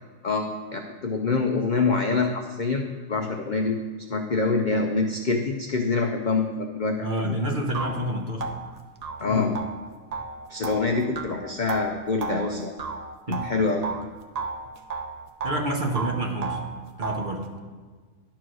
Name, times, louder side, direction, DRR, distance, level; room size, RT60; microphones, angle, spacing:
voice 1, 0.2-3.8 4.1-7.4 9.2-9.6 10.5-12.7 13.3-13.9, left 3 dB, 60° left, 3 dB, 0.5 m, -25 dB
voice 2, 7.0-8.5 13.3-13.5 15.4-16.6 17.0-17.5, right 1 dB, 40° right, 2 dB, 0.9 m, -28 dB
sound 1, 7.2-7.3 7.7-14.1 14.4-15.7 16.0-17.4, right 3 dB, 65° right, 0.4 m, -33 dB
11.0 x 4.6 x 6.2 m, 1.5 s
omnidirectional pair, 1.5 m